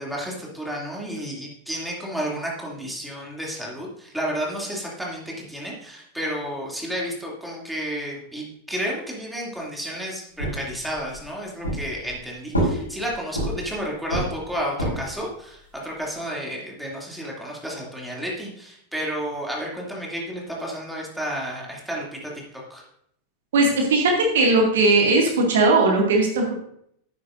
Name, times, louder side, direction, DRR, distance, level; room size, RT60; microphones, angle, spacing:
voice 1, 0.0-22.9, equal, ahead, -3 dB, 2.7 m, -31 dB
sound 1, 10.4-11.2 11.6-12.2 12.5-13.8 14.1-15.2, right 1 dB, 85° left, 4.1 m, -26 dB
voice 2, 23.5-26.5, right 2 dB, 60° right, 1 dB, 2.2 m, -18 dB
12.5 x 9.5 x 2.6 m, 0.70 s
figure-of-eight pair, 90°, 0 cm